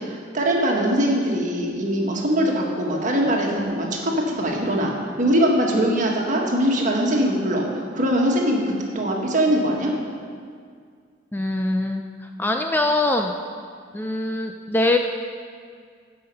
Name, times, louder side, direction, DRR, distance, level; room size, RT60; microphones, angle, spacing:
voice 1, 0.0-9.9, equal, 40° right, -1 dB, 1.6 m, -22 dB
voice 2, 11.3-12.0 12.4-13.3 13.9-15.0, left 2 dB, 10° left, 4 dB, 0.4 m, -22 dB
15.5 x 5.8 x 5.5 m, 2.1 s
head